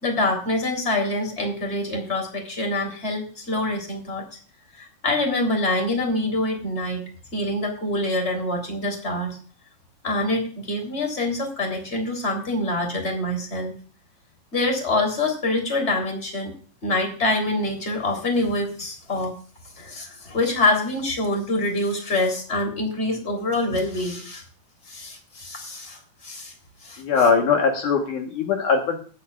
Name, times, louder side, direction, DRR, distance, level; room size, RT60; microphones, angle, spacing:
voice 1, 0.0-4.2 4.8-7.0 7.3-9.4 10.0-13.7 14.5-16.5 16.8-19.4 19.8-24.4 24.9-26.5 26.8-27.0, left 2 dB, 20° left, 2 dB, 3.7 m, -25 dB
voice 2, 27.0-29.1, left 5 dB, 70° left, 2 dB, 2.8 m, -21 dB
21.5 x 9.5 x 2.5 m, 0.40 s
omnidirectional pair, 3.9 m